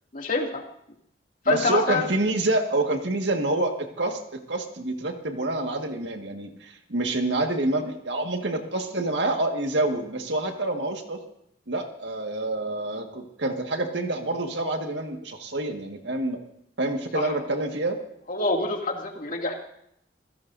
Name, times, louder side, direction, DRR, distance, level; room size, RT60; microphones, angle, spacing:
voice 1, 0.1-0.6 1.5-2.0 17.1-17.3 18.3-19.5, left 3 dB, 50° left, 0 dB, 2.6 m, -26 dB
voice 2, 1.5-11.2 11.7-16.4 16.8-18.0, right 2 dB, 85° right, 4 dB, 1.8 m, -27 dB
27.5 x 16.5 x 2.7 m, 0.73 s
head